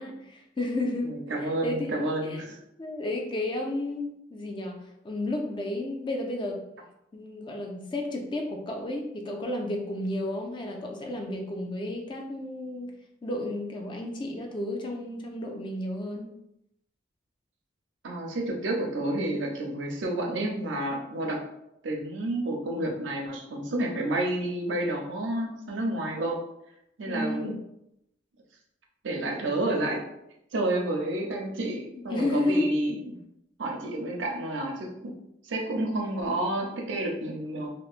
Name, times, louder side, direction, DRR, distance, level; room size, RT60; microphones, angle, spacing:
voice 1, 0.0-2.4 2.8-4.8 5.0-6.6 7.1-16.4 27.1-27.6 32.0-32.7, left 1 dB, 25° left, 2 dB, 0.3 m, -32 dB
voice 2, 1.0-2.6 18.0-21.4 21.8-26.4 27.0-27.5 29.0-30.0 30.5-33.2 33.6-35.1 35.5-37.7, right 1 dB, 80° right, 1 dB, 0.5 m, -30 dB
2.8 x 2.1 x 2.4 m, 0.82 s
head